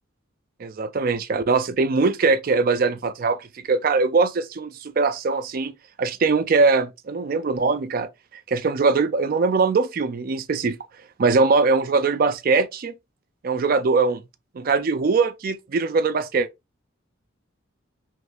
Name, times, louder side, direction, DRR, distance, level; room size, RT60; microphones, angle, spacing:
voice 1, 0.6-8.1 8.5-10.8 11.2-12.9 13.4-14.2 14.5-16.5, right 4 dB, 45° right, 0.4 m, -21 dB
3.1 x 2.5 x 3.3 m
head